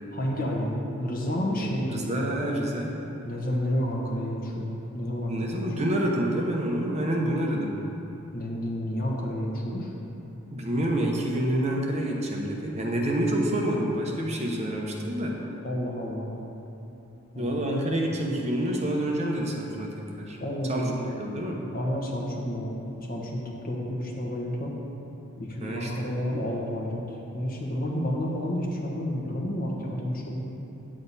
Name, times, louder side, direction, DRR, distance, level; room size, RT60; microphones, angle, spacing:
voice 1, 0.1-2.1 3.2-5.7 8.3-9.9 15.6-16.4 17.3-17.6 20.4-21.1 21.7-22.7 23.1-24.7 25.4-27.0 27.3-30.5, equal, 40° left, -2 dB, 1.2 m, -30 dB
voice 2, 1.6-3.0 5.3-7.7 10.5-15.4 17.4-20.4 20.7-20.8 21.2-21.6 25.6-26.1, right 1 dB, 30° right, -1 dB, 0.9 m, -28 dB
9.0 x 7.6 x 4.1 m, 2.9 s
head